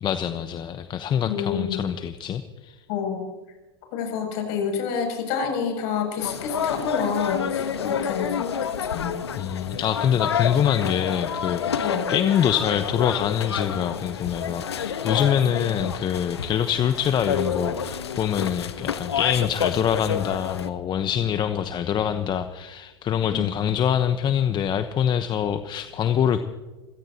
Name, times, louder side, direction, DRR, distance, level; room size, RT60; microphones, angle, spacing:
voice 1, 0.0-2.8 9.4-26.4, left 9 dB, 35° left, 9 dB, 1.1 m, -25 dB
voice 2, 1.3-1.8 2.9-3.2 3.9-9.1 11.8-12.0 23.3-23.4, left 7 dB, 60° left, 3 dB, 7.4 m, -28 dB
sound 1, 6.2-20.7, left 7 dB, 85° left, 1.3 m, -29 dB
28.0 x 17.0 x 3.0 m, 1.2 s
hypercardioid pair, 95°, 13 cm